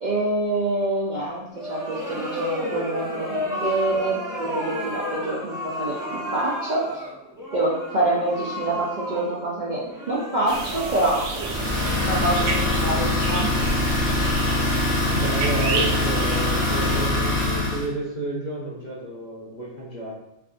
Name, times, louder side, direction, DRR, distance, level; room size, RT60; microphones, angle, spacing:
voice 1, 0.0-6.8 7.5-9.8 10.1-11.2 12.1-12.4 12.6-13.5, right 2 dB, 50° right, -6 dB, 0.5 m, -26 dB
sound 1, 1.5-12.5, left 1 dB, 5° right, 0.5 m, -32 dB
sound 2, 10.5-17.1, right 4 dB, 80° right, 1.0 m, -31 dB
Idling, 11.3-17.9, left 2 dB, 80° left, 1.6 m, -23 dB
voice 2, 15.1-20.1, right 1 dB, 40° left, -6 dB, 0.7 m, -31 dB
4.5 x 2.5 x 2.5 m, 0.89 s
omnidirectional pair, 1.4 m